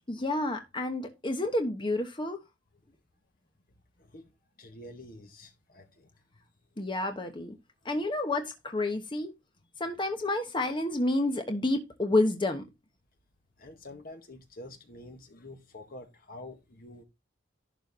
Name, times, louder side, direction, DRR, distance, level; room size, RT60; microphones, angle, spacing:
voice 1, 0.1-2.4 6.8-7.6 7.8-9.3 9.8-12.6, left 2 dB, 25° left, 1.1 m, -29 dB
voice 2, 4.0-4.3 4.6-6.1 13.6-17.0, left 1 dB, 45° left, 1.7 m, -47 dB
11.5 x 4.4 x 4.3 m
head